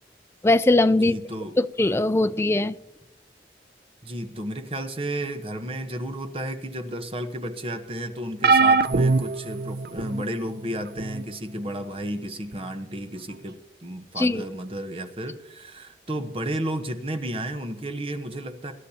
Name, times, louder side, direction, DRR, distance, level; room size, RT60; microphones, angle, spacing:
voice 1, 0.4-1.2 1.6-2.8 14.2-14.4, left 2 dB, 15° left, 12 dB, 0.3 m, -20 dB
voice 2, 1.0-1.6 4.0-18.7, right 1 dB, 30° right, 7 dB, 1.0 m, -32 dB
sound 1, 8.4-10.2 11.0-11.2 12.5-12.6, right 4 dB, 60° right, 0.4 m, -21 dB
23.5 x 11.5 x 2.8 m, 0.94 s
head